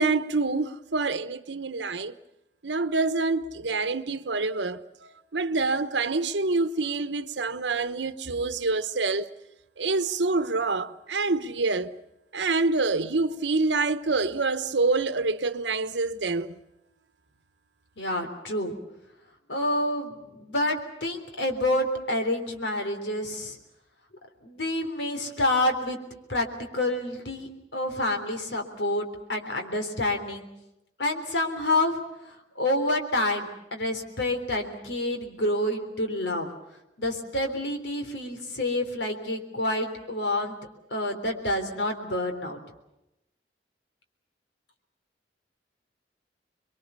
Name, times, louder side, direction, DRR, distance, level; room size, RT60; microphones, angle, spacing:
voice 1, 0.0-2.1 2.6-9.2 9.8-11.9 12.3-16.5, right 3 dB, 80° right, 1.1 m, -26 dB
voice 2, 18.0-18.7 19.5-23.6 24.4-26.0 26.3-30.5 31.0-32.0 32.6-36.5 37.0-40.6 40.9-42.6, left 1 dB, 75° left, 3.6 m, -28 dB
28.0 x 22.5 x 6.9 m
head